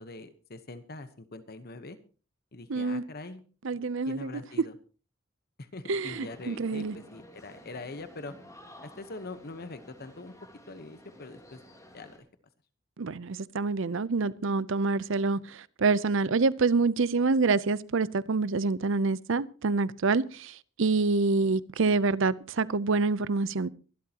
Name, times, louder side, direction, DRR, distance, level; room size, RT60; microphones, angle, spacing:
voice 1, 0.0-2.0 2.5-3.4 3.7-4.7 5.6-8.3 8.8-10.3 10.7-11.6 11.9-12.2, left 2 dB, 50° left, 1.1 m, -43 dB
voice 2, 2.7-3.0 3.6-4.3 5.9-7.0 13.0-23.7, right 3 dB, 65° right, 0.6 m, -27 dB
sound 1, 6.0-12.2, equal, 15° left, 3.1 m, -52 dB
23.5 x 12.0 x 2.9 m
head